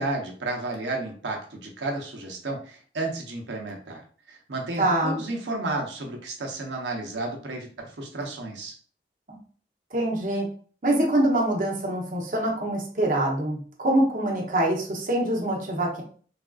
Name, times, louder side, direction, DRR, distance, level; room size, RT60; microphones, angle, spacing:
voice 1, 0.0-4.0 4.3-8.7, right 2 dB, 90° right, 1 dB, 0.8 m, -32 dB
voice 2, 4.8-5.2 9.3-9.4 9.9-10.5 10.8-16.0, right 1 dB, 50° right, -2 dB, 0.8 m, -24 dB
3.4 x 2.5 x 2.3 m, 0.43 s
head